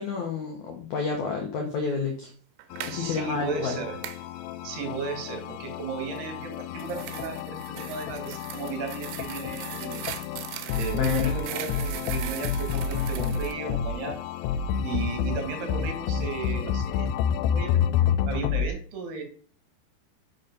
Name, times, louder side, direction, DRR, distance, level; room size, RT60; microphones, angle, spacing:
voice 1, 0.0-2.3 2.8-3.8 10.9-11.3, left 5 dB, 75° left, 3 dB, 1.7 m, -29 dB
sound 1, 2.6-3.0 4.0-4.2 6.4-13.5, right 13 dB, 85° right, 2.8 m, -39 dB
sound 2, 2.7-18.7, left 8 dB, 90° left, 2.0 m, -30 dB
voice 2, 2.9-4.0 4.6-10.1 10.7-14.3 14.8-17.2 17.5-19.2, right 5 dB, 70° right, 5 dB, 3.6 m, -35 dB
8.4 x 5.3 x 5.3 m, 0.43 s
omnidirectional pair, 4.9 m